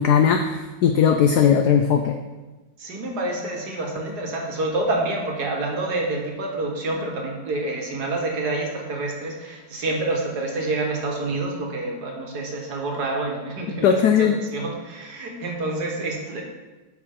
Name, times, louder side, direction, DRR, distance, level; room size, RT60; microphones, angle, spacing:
voice 1, 0.0-2.2 13.8-14.4, left 7 dB, 90° left, 5 dB, 0.8 m, -18 dB
voice 2, 2.8-16.4, right 2 dB, 55° right, 1 dB, 1.5 m, -28 dB
12.0 x 4.7 x 3.6 m, 1.2 s
omnidirectional pair, 2.3 m